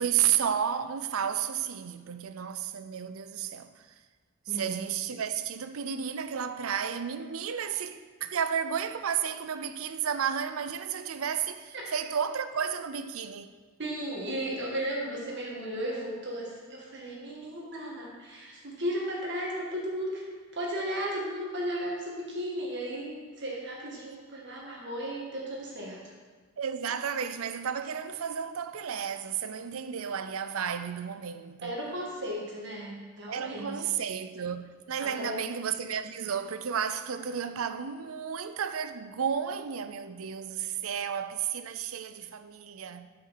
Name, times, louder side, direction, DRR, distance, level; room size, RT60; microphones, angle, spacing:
voice 1, 0.0-3.8 4.5-13.5 26.6-31.8 33.3-43.1, right 8 dB, 75° right, 0.5 m, -32 dB
voice 2, 13.8-20.3 20.5-26.1 31.6-33.9 35.0-35.4, equal, 55° right, 1.8 m, -35 dB
8.6 x 5.6 x 5.8 m
head